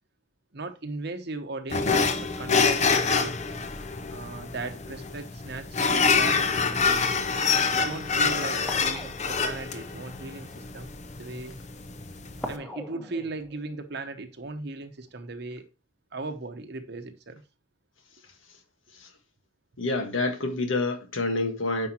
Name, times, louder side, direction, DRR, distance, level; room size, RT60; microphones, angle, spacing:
voice 1, 0.5-3.4 4.1-7.2 7.7-10.9 11.2-11.6 12.4-15.7 16.1-17.4, right 3 dB, 55° right, 0.9 m, -37 dB
sound 1, 1.7-12.5, left 5 dB, 35° left, 0.7 m, -26 dB
sound 2, 8.7-10.4 12.4-14.9 15.2-15.4, equal, 5° left, 1.2 m, -42 dB
voice 2, 19.8-21.9, left 2 dB, 80° left, 1.6 m, -27 dB
9.7 x 5.3 x 2.9 m
head